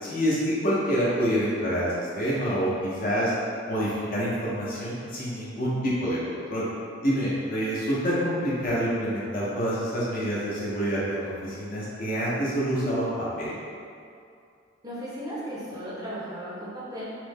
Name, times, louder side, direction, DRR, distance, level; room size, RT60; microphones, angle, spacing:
voice 1, 0.0-3.3 3.7-6.7 7.0-13.1 13.4-13.6, equal, 45° left, -7 dB, 0.7 m, -27 dB
voice 2, 14.8-17.1, equal, 20° right, -8 dB, 0.6 m, -36 dB
3.1 x 2.1 x 3.3 m, 2.4 s
head